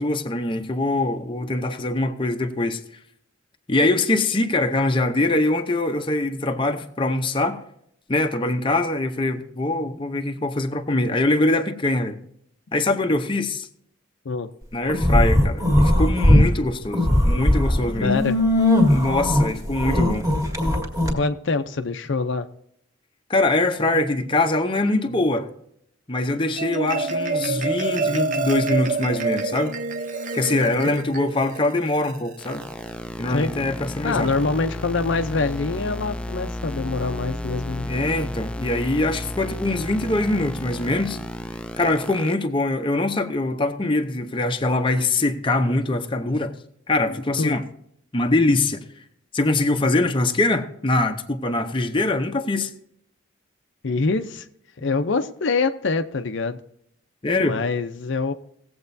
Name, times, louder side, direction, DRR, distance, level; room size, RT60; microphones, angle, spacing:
voice 1, 0.0-2.8 3.7-7.6 8.1-12.2 12.7-13.7 14.7-18.2 18.9-20.3 23.3-25.5 26.1-29.7 30.3-32.6 33.2-34.3 37.9-41.2 41.8-46.5 46.9-47.6 48.1-48.8 49.3-52.7 57.2-57.6, left 2 dB, 25° left, 0.7 m, -23 dB
sound 1, 14.9-16.5 16.8-21.1, left 1 dB, 15° right, 1.8 m, -18 dB
voice 2, 18.0-18.4 21.1-22.5 30.5-30.9 33.3-33.5 34.0-37.9 47.4-47.6 53.8-54.5 54.8-56.6 57.4-58.3, left 3 dB, 65° left, 0.6 m, -25 dB
Marimba xylophone, 26.3-32.9, right 3 dB, 40° right, 0.8 m, -27 dB
sound 2, 32.4-42.3, left 1 dB, 5° left, 0.3 m, -33 dB
18.5 x 7.8 x 2.7 m
head